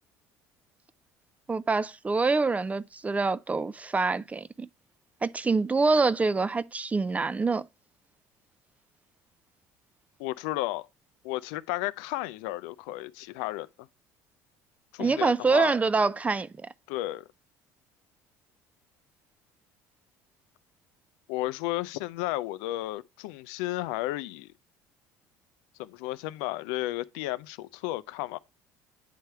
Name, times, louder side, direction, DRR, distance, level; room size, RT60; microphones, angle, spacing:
voice 1, 1.5-4.7 5.2-7.7 15.0-16.7, right 4 dB, 15° right, 0.4 m, -26 dB
voice 2, 10.2-10.9 11.2-13.7 14.9-15.7 16.9-17.3 21.3-24.5 25.8-28.4, left 17 dB, 80° left, 0.4 m, -33 dB
9.2 x 3.3 x 4.5 m
supercardioid pair, 85°, 8 cm